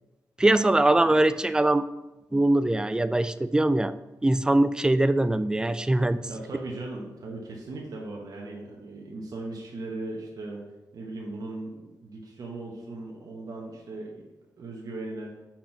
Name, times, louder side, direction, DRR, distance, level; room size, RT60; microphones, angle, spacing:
voice 1, 0.4-1.8 2.3-3.9 4.2-6.3, right 1 dB, 10° right, 13 dB, 0.3 m, -22 dB
voice 2, 6.3-10.7 10.9-14.2 14.6-15.4, right 2 dB, 60° right, -2 dB, 1.2 m, -38 dB
5.8 x 4.4 x 5.8 m, 1.0 s
wide cardioid pair, 100°, 7 cm